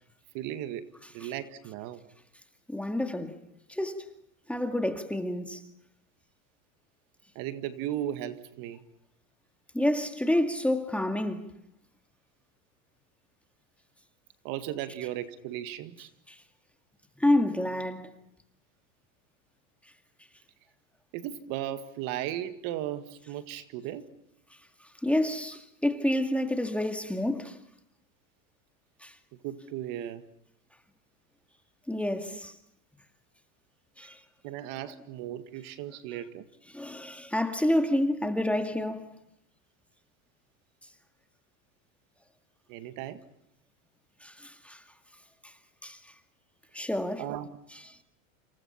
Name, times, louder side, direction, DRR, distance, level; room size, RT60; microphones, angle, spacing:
voice 1, 0.3-2.0 7.4-8.8 14.4-16.1 21.1-24.1 29.4-30.2 32.3-32.4 34.0-34.1 34.4-36.5 42.7-43.2 47.2-47.5, right 12 dB, 50° right, 1.9 m, -36 dB
voice 2, 2.7-3.4 3.7-4.1 4.5-5.6 9.7-11.5 16.3-16.4 17.2-18.1 25.0-27.6 29.0-29.1 31.9-32.5 34.0-34.2 36.7-39.1 44.2-44.8 45.4-45.5 45.8-46.0 46.7-47.3, left 1 dB, 5° left, 2.0 m, -28 dB
28.5 x 27.5 x 5.8 m
supercardioid pair, 125°, 41 cm